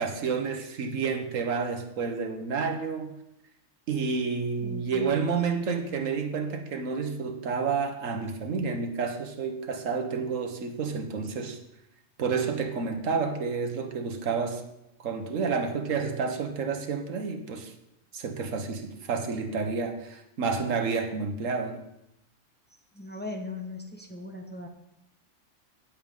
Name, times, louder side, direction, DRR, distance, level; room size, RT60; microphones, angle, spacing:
voice 1, 0.0-3.2 3.9-11.6 12.2-14.6 15.0-17.7 18.1-21.9, right 5 dB, 90° right, 1.4 m, -30 dB
voice 2, 4.6-5.6 22.9-24.7, left 2 dB, 10° left, 1.1 m, -39 dB
16.5 x 7.3 x 3.7 m
omnidirectional pair, 1.3 m